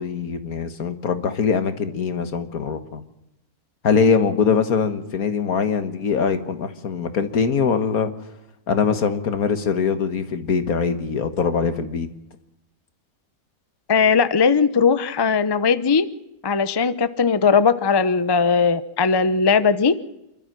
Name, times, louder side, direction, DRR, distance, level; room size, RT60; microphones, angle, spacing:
voice 1, 0.0-3.0 3.8-8.1 8.7-12.1, left 6 dB, 70° left, 10 dB, 1.9 m, -22 dB
voice 2, 13.9-16.1 16.4-19.9, left 5 dB, 25° left, 14 dB, 0.5 m, -18 dB
28.0 x 12.5 x 7.5 m, 0.90 s
omnidirectional pair, 1.6 m